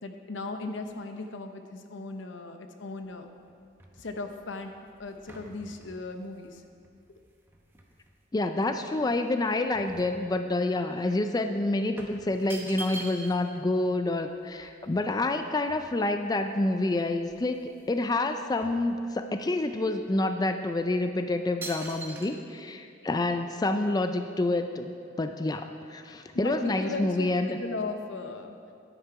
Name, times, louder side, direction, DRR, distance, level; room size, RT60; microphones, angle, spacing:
voice 1, 0.0-3.3 4.0-4.7 5.0-6.6 26.3-28.6, left 3 dB, 85° left, 6 dB, 0.8 m, -37 dB
sound 1, 3.0-8.1 8.6-10.8 11.1-11.2 12.0-13.5 13.8-13.9 14.1-16.3 16.8-16.9 17.2-18.0 18.2-19.5 20.0-20.2 20.8-21.1 21.6-22.3, right 2 dB, 10° right, 0.9 m, -45 dB
voice 2, 8.3-24.9 25.2-27.6, left 2 dB, 20° left, 7 dB, 0.3 m, -28 dB
10.0 x 9.8 x 4.7 m, 2.4 s
head